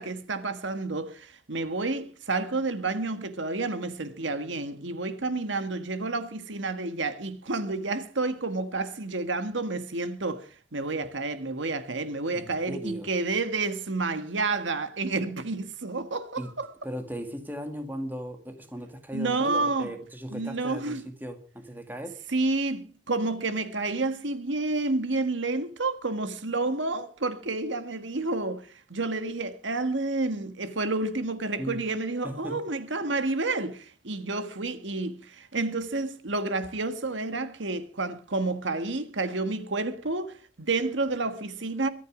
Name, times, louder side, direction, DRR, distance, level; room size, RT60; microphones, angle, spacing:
voice 1, 0.0-16.7 19.1-19.9 20.3-21.0 22.3-41.9, right 3 dB, 75° right, 1.6 m, -30 dB
voice 2, 12.3-13.1 16.4-16.5 16.8-22.2 31.6-31.8 32.2-32.7, equal, 10° right, 1.9 m, -37 dB
23.5 x 9.4 x 4.9 m
head